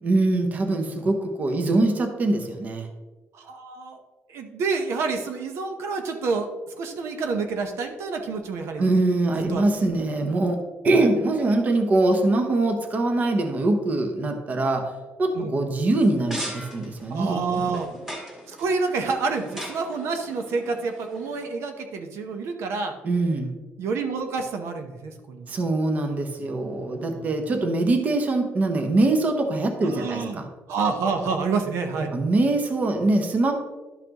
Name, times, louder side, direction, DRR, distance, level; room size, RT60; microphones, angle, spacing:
voice 1, 0.0-2.9 8.8-14.9 15.2-17.6 23.0-23.5 25.5-30.5 32.1-33.5, right 2 dB, 35° right, 5 dB, 0.9 m, -23 dB
voice 2, 3.3-4.0 4.3-8.9 9.3-9.6 15.3-15.5 17.1-17.9 18.5-22.9 23.8-25.5 26.4-27.3 29.8-32.1, right 4 dB, 65° right, 5 dB, 0.9 m, -28 dB
sound 1, 16.0-21.5, equal, 10° right, 1.6 m, -39 dB
12.0 x 5.8 x 3.0 m, 1.2 s
cardioid pair, 160°, 5 cm